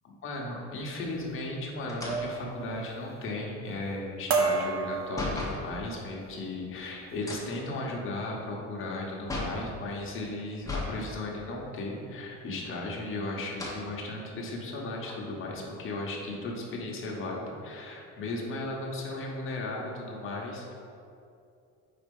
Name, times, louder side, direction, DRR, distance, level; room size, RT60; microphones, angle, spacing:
voice 1, 0.2-20.7, left 2 dB, 40° left, -2 dB, 1.0 m, -36 dB
sound 1, 1.1-1.4 2.1-2.4 2.8-3.3 3.7-3.9 4.3-5.6 6.2-6.5 6.8-7.2, right 4 dB, 45° right, 0.8 m, -31 dB
sound 2, 1.9-5.7 7.1-9.7 10.6-11.0 11.4-11.5 12.6-13.1 13.5-13.9 14.5-14.6 15.0-16.4, left 2 dB, 10° left, 0.8 m, -38 dB
4.3 x 4.2 x 5.3 m, 2.6 s
cardioid pair, 155°, 32 cm